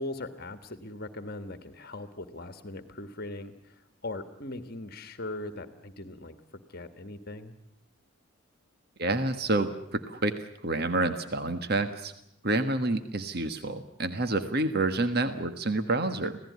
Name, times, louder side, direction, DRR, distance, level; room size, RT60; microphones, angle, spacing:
voice 1, 0.0-7.6, left 2 dB, 45° left, 9 dB, 1.5 m, -40 dB
voice 2, 9.0-12.1 12.4-16.4, right 2 dB, 45° right, 9 dB, 1.4 m, -28 dB
27.0 x 17.0 x 9.5 m, 0.79 s
head